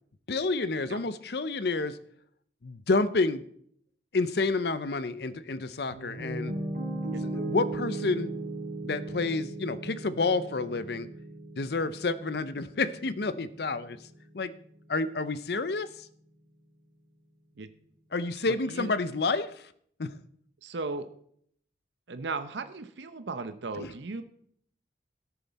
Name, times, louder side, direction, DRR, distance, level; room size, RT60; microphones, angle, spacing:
voice 1, 0.3-2.0 2.6-3.4 4.1-6.6 7.2-8.3 8.8-11.1 11.6-14.0 14.3-14.5 14.9-16.1 18.1-19.7 20.0-20.2 23.8-23.9, left 3 dB, 60° left, 15 dB, 0.6 m, -29 dB
Piano, 5.9-14.0, right 2 dB, 50° right, 3.9 m, -37 dB
voice 2, 18.5-18.9 20.6-21.1 22.1-24.2, right 3 dB, 75° right, 10 dB, 0.7 m, -36 dB
17.0 x 7.0 x 4.1 m, 0.64 s
head